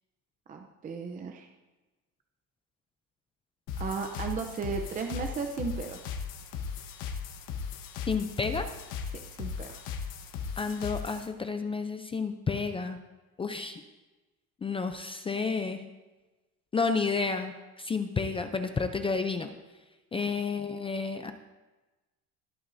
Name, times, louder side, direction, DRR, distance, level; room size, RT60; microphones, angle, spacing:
voice 1, 0.5-1.5 3.8-6.0 9.1-9.8 20.1-20.3, right 5 dB, 25° right, 4 dB, 0.6 m, -35 dB
sound 1, 3.7-11.3, left 6 dB, 75° left, 1.3 m, -37 dB
voice 2, 8.1-8.7 10.6-13.0 13.4-13.8 14.6-15.8 16.7-19.5 20.1-21.3, left 4 dB, 15° left, 8 dB, 0.4 m, -31 dB
19.5 x 8.7 x 2.7 m, 1.2 s
cardioid pair, 150°, 34 cm